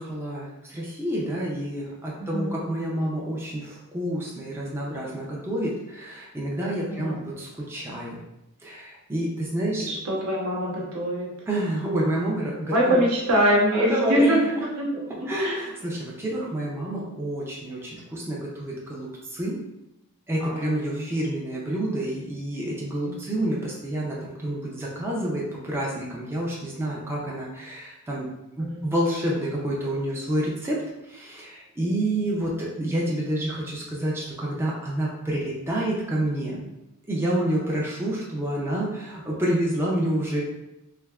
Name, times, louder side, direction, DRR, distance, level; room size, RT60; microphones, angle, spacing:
voice 1, 0.0-8.2 8.6-9.9 11.5-13.0 13.7-14.5 15.3-19.6 20.3-28.3 28.6-36.6 37.1-40.5, right 1 dB, 10° right, -5 dB, 0.4 m, -28 dB
voice 2, 2.2-2.5 6.9-7.2 9.8-11.3 12.7-14.4 14.8-15.6 20.4-21.0 23.0-23.1 28.6-28.9 37.4-37.6, equal, 70° right, -3 dB, 0.8 m, -24 dB
3.3 x 2.7 x 2.3 m, 0.93 s
head